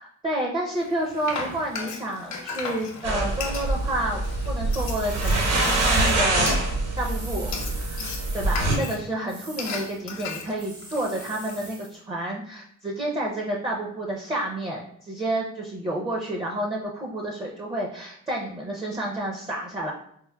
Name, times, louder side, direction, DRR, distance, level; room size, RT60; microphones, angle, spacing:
voice 1, 0.0-6.6 7.0-19.9, right 1 dB, 15° right, -1 dB, 0.5 m, -30 dB
Frying (food), 0.8-11.7, left 4 dB, 65° left, 0.7 m, -37 dB
sound 1, 3.0-8.8, right 2 dB, 55° right, 0.9 m, -25 dB
sound 2, 4.7-6.2 7.0-8.8 9.3-10.0 10.6-11.9, right 2 dB, 75° right, 1.5 m, -43 dB
4.4 x 2.0 x 2.2 m, 0.66 s
cardioid pair, 90°, 30 cm